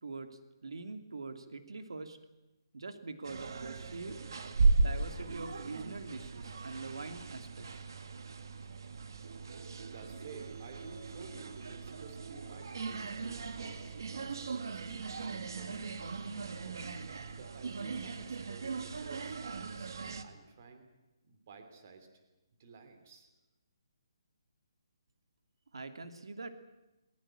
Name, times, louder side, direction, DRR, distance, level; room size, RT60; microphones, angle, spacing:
voice 1, 0.0-2.2 2.7-4.2 4.8-7.7 25.7-26.5, right 3 dB, 85° right, 8 dB, 2.7 m, -44 dB
sound 1, 3.2-20.2, right 4 dB, 50° right, 1.9 m, -36 dB
voice 2, 9.8-15.9 16.3-16.8 17.4-19.9 20.2-20.8 21.2-22.1 22.6-23.3, right 5 dB, 30° right, 6 dB, 3.0 m, -53 dB
21.5 x 21.0 x 8.9 m, 1.0 s
hypercardioid pair, 180°, 2 cm